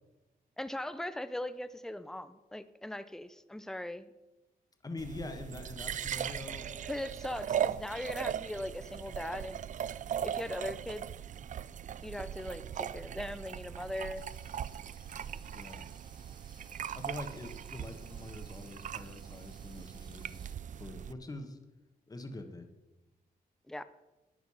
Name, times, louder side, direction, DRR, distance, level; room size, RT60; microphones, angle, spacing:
voice 1, 0.6-4.1 6.8-9.6 10.2-11.1 12.0-14.2 23.7-23.8, left 1 dB, 5° left, 13 dB, 0.6 m, -39 dB
voice 2, 4.8-6.7 15.5-15.9 16.9-21.6 22.1-22.7, left 2 dB, 25° left, 6 dB, 1.3 m, -44 dB
sound 1, 5.0-21.1, right 9 dB, 55° right, 0.4 m, -39 dB
sound 2, 14.1-20.6, right 3 dB, 30° right, 1.1 m, -59 dB
11.0 x 9.2 x 5.6 m, 1.1 s
wide cardioid pair, 110°, 16 cm